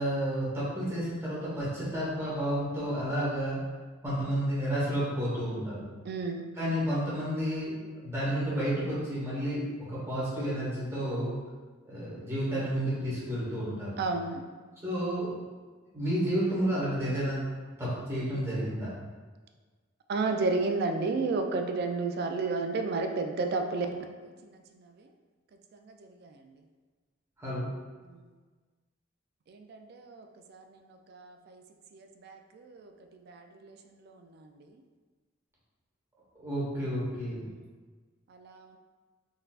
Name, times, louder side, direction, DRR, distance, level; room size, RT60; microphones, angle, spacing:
voice 1, 0.0-3.6 4.0-5.8 6.5-7.7 8.0-9.6 9.9-11.4 11.8-13.9 14.8-15.3 15.9-17.4 17.8-18.9 27.4-27.7 36.4-37.4, equal, 15° right, -9 dB, 1.1 m, -31 dB
voice 2, 6.1-6.5 14.0-14.4 20.1-24.0 29.5-30.6 31.1-31.6 31.9-32.9 33.3-33.8 34.0-34.1 37.4-37.6 38.4-38.8, right 3 dB, 55° right, 5 dB, 0.3 m, -32 dB
3.8 x 2.6 x 2.4 m, 1.4 s
head